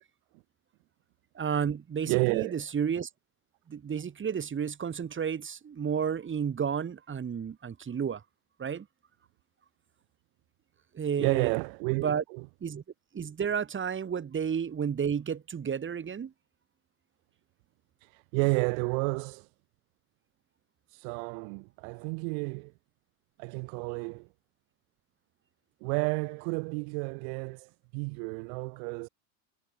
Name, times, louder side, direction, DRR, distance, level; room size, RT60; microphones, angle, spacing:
voice 1, 1.4-3.1 3.7-8.2 8.6-8.9 10.9-11.5 12.0-12.2 12.6-12.8 13.1-16.3, right 7 dB, 25° right, 3.4 m, -31 dB
voice 2, 2.1-2.6 11.2-12.5 18.0-19.5 20.9-22.7 23.4-24.3 25.8-29.1, right 40 dB or more, 60° right, 4.1 m, -31 dB
hypercardioid pair, 105°, 47 cm